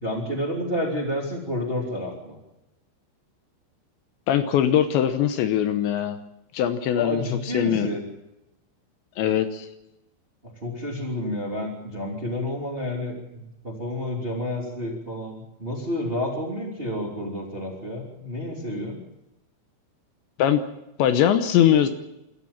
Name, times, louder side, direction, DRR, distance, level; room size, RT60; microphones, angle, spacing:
voice 1, 0.0-2.4 6.9-8.0 10.6-19.0, left 1 dB, 15° right, 0 dB, 2.3 m, -30 dB
voice 2, 4.3-6.2 6.5-7.2 7.5-7.9 9.2-9.7 20.4-20.6 21.0-21.9, left 10 dB, 75° left, 9 dB, 3.0 m, -21 dB
26.5 x 13.5 x 7.3 m, 0.91 s
omnidirectional pair, 5.6 m